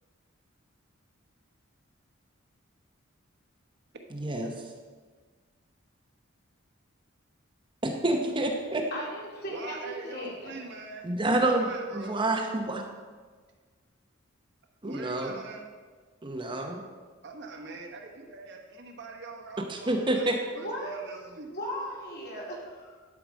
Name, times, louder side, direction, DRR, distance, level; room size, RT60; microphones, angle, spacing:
voice 1, 4.1-4.7 7.8-8.8 11.0-12.8 14.8-15.4 16.2-16.8 19.7-20.3, right 2 dB, 25° right, 2 dB, 0.8 m, -28 dB
voice 2, 8.9-10.6 17.6-17.7 20.5-21.0 21.5-23.0, equal, 50° left, -3 dB, 2.7 m, -37 dB
voice 3, 9.5-11.1 11.4-12.2 14.8-15.7 17.2-21.5, right 3 dB, 55° right, 2 dB, 1.2 m, -43 dB
11.5 x 4.9 x 6.3 m, 1.5 s
head